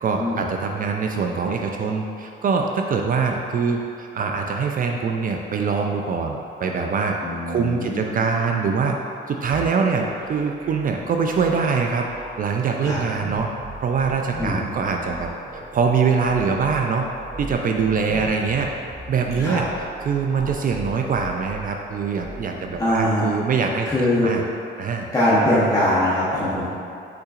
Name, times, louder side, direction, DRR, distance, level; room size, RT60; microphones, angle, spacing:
voice 1, 0.0-7.2 7.5-9.0 9.3-12.1 12.4-13.5 13.8-17.1 17.4-18.7 19.1-19.7 20.0-23.9 24.2-24.4 24.8-25.1, right 5 dB, 45° right, 2 dB, 0.4 m, -23 dB
voice 2, 7.2-8.1 12.8-13.0 14.4-14.7 19.4-19.6 22.7-23.3 23.9-24.4 25.1-26.7, left 1 dB, 15° left, -10 dB, 0.9 m, -22 dB
sound 1, 9.5-23.1, right 1 dB, 30° right, 0.8 m, -39 dB
5.7 x 3.7 x 2.5 m, 2.5 s
cardioid pair, 90°, 20 cm